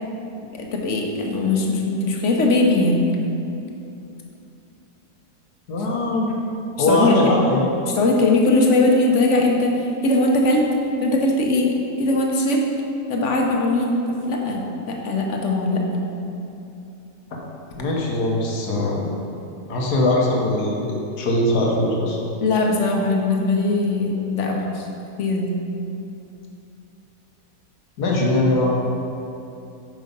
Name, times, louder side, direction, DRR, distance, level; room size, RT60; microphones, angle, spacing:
voice 1, 0.5-3.1 6.8-7.2 8.0-9.7 10.0-10.6 11.0-11.7 12.0-12.6 13.1-14.0 14.3-16.0 22.4-24.9 25.2-25.5, left 2 dB, 55° left, 0 dB, 1.1 m, -20 dB
voice 2, 5.7-6.3 6.8-7.7 17.7-19.1 19.7-22.2 28.0-28.7, left 1 dB, 80° left, -2 dB, 1.7 m, -21 dB
6.5 x 5.3 x 5.2 m, 2.8 s
omnidirectional pair, 1.7 m